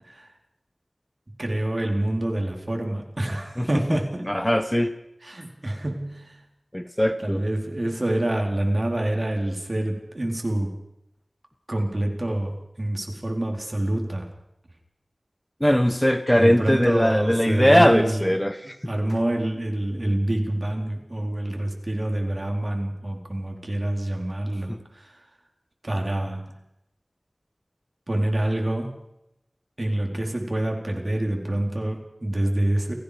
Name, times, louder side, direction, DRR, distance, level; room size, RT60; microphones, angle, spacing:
voice 1, 1.4-4.3 5.2-6.4 7.2-10.7 11.7-14.3 16.3-18.2 18.9-25.2 25.8-26.5 28.1-28.9 29.8-32.9, right 1 dB, 50° right, 2 dB, 4.4 m, -26 dB
voice 2, 3.6-4.0 4.2-5.0 6.7-7.4 15.6-18.9 24.7-24.8, equal, 10° left, 10 dB, 1.3 m, -20 dB
29.0 x 17.5 x 5.3 m, 0.85 s
wide cardioid pair, 45°, 0 cm